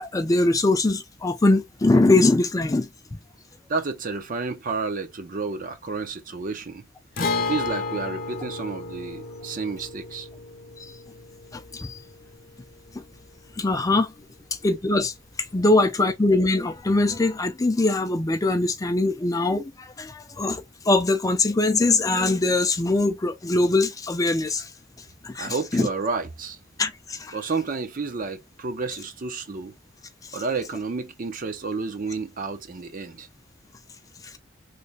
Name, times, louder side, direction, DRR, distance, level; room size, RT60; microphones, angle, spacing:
voice 1, 0.0-2.9 11.5-12.0 13.6-14.1 14.6-15.1 15.5-24.7 25.2-25.9 26.8-27.3, left 2 dB, 20° left, 0.4 m, -22 dB
voice 2, 3.7-6.8 7.4-10.3 25.3-26.6 27.3-29.7 30.3-33.3, right 4 dB, 45° right, 0.6 m, -30 dB
Guitar, 7.2-14.8 15.0-15.1 17.2-17.3, left 4 dB, 50° left, 0.8 m, -33 dB
3.3 x 2.1 x 4.0 m
head